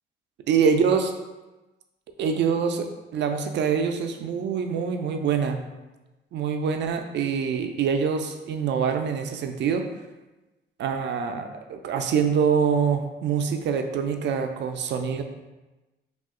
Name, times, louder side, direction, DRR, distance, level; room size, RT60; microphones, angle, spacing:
voice 1, 0.5-1.1 2.2-5.6 6.3-9.9 10.8-15.2, right 6 dB, 65° right, 6 dB, 0.4 m, -25 dB
2.8 x 2.4 x 3.6 m, 1.1 s
cardioid pair, 90°, 20 cm